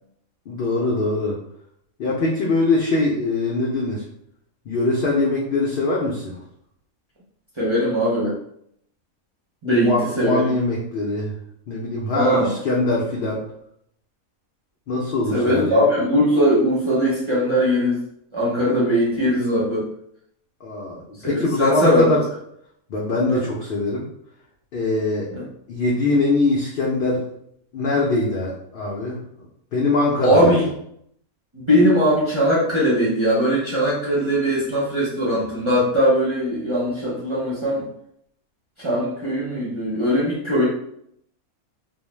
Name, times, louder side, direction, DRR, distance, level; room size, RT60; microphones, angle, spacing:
voice 1, 0.5-1.4 2.0-4.0 4.7-6.4 9.6-11.3 11.7-13.4 14.9-15.8 20.6-22.2 22.9-24.1 24.7-25.3 25.7-27.2 27.7-29.2 29.7-30.6, left 2 dB, 85° left, -3 dB, 0.4 m, -22 dB
voice 2, 7.6-8.3 9.6-10.4 12.1-12.5 15.3-18.0 18.3-19.9 21.2-22.2 23.3-23.4 25.3-25.4 30.2-30.7 31.5-37.8 38.8-40.6, equal, 40° right, -7 dB, 0.4 m, -20 dB
2.4 x 2.1 x 3.1 m, 0.72 s
omnidirectional pair, 1.5 m